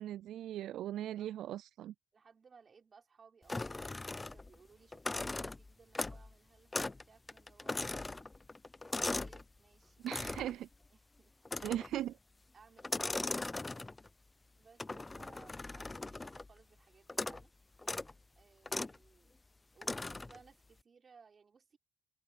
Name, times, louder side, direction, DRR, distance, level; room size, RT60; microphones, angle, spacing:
voice 1, 0.0-1.9 10.0-10.7 11.6-12.2, right 12 dB, 80° right, 0.4 m, -39 dB
voice 2, 0.9-1.3 2.1-7.9 9.2-10.5 10.9-11.3 12.5-13.1 14.6-17.5 18.4-19.4 19.7-21.8, right 5 dB, 40° right, 5.1 m, -63 dB
sound 1, 3.5-4.6 4.9-6.3 6.7-7.0 7.3-9.4 10.1-10.6 11.5-12.0 12.8-14.1 14.8-16.5 17.1-17.5 17.8-18.1 18.7-19.0 19.8-20.4, left 2 dB, 20° left, 0.7 m, -39 dB
cardioid pair, 90°, 0 cm